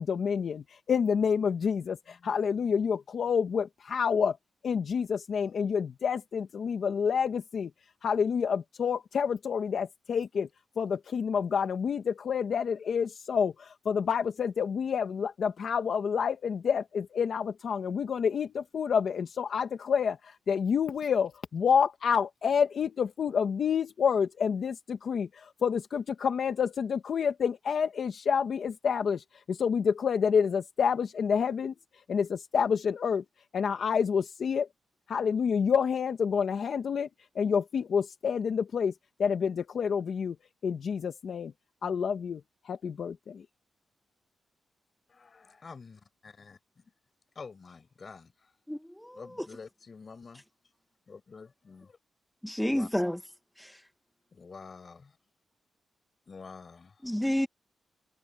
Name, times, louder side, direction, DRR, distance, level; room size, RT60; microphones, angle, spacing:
voice 1, 0.0-4.4 4.6-7.7 8.0-10.5 10.8-31.7 32.1-33.2 33.5-34.7 35.1-37.1 37.3-38.9 39.2-40.3 40.6-41.5 41.8-43.4, left 6 dB, 60° left, 1.4 m, -28 dB
voice 2, 45.1-46.8 47.3-48.5 49.1-50.4 51.1-51.9 52.6-52.9 54.3-55.2 56.3-57.2, left 5 dB, 40° left, 4.9 m, -48 dB
voice 3, 48.7-49.2 52.4-53.2 53.6-53.8 57.0-57.5, equal, 5° left, 1.5 m, -30 dB
wide cardioid pair, 130°, 0 cm